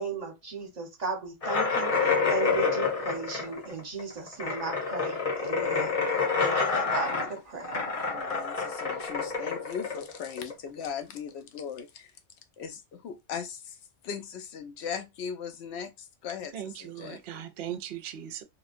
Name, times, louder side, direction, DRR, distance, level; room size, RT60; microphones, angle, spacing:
voice 1, 0.0-5.9 6.4-7.7, right 4 dB, 35° right, 1.0 m, -36 dB
sound 1, 1.4-10.8, left 4 dB, 35° left, 0.8 m, -28 dB
voice 2, 7.9-12.1 12.6-13.8 14.0-17.5, left 7 dB, 70° left, 0.8 m, -39 dB
voice 3, 16.5-18.4, right 10 dB, 60° right, 0.7 m, -38 dB
3.0 x 2.2 x 2.5 m
omnidirectional pair, 1.3 m